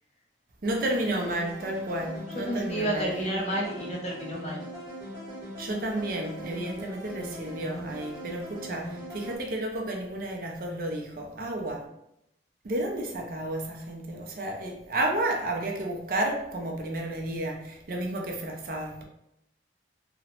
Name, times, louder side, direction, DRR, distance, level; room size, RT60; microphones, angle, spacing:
sound 1, 0.6-9.4, equal, 20° left, 1.0 m, -40 dB
voice 1, 0.6-3.1 5.6-11.8 12.6-19.0, right 1 dB, 50° right, 1 dB, 0.4 m, -31 dB
voice 2, 2.3-4.6, right 1 dB, 35° left, -2 dB, 0.6 m, -30 dB
2.8 x 2.1 x 2.9 m, 0.80 s
head